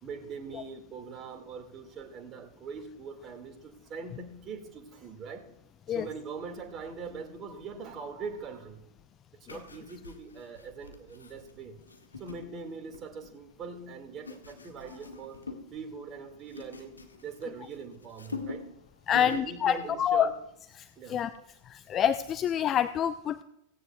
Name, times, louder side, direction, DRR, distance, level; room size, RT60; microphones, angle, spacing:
voice 1, 0.0-5.5 5.9-8.8 9.5-11.8 12.2-15.4 15.7-16.9 17.2-18.7 19.1-20.3 21.0-21.2, right 5 dB, 30° right, 5 dB, 2.1 m, -42 dB
sound 1, 9.4-13.3 13.9-15.8 16.0-17.8 18.0-18.8 19.1-19.6 19.9-20.1, left 4 dB, 75° left, 1.5 m, -44 dB
voice 2, 19.1-20.3 20.8-20.9 21.1-21.3 21.7-23.4, left 9 dB, 30° left, 12 dB, 0.4 m, -27 dB
17.0 x 16.5 x 2.3 m, 0.82 s
figure-of-eight pair, 90°, 0 cm